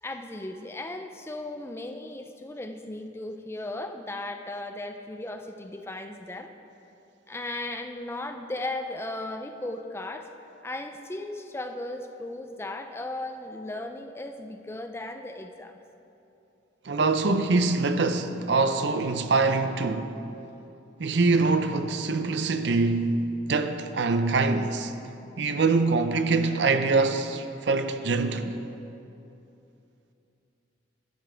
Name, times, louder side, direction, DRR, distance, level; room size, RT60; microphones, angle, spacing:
voice 1, 0.0-6.5 7.3-10.3 10.6-15.8, left 2 dB, 15° left, 0.4 m, -36 dB
voice 2, 16.9-20.1 21.0-23.2 23.5-24.9 25.4-28.5, right 3 dB, 65° right, 0.6 m, -24 dB
12.0 x 11.5 x 3.4 m
head